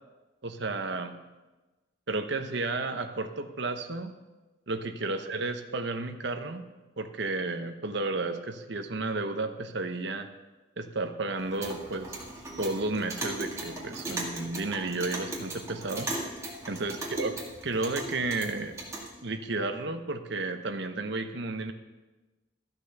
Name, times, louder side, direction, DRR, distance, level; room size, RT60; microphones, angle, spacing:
voice 1, 0.4-1.1 2.1-4.1 4.7-10.3 10.8-12.2 12.6-16.1 16.7-18.7 19.2-21.7, right 3 dB, 60° right, 7 dB, 0.9 m, -32 dB
Clock, 11.4-19.1, right 2 dB, 15° right, 2.0 m, -38 dB
13.5 x 6.1 x 6.6 m, 1.2 s
head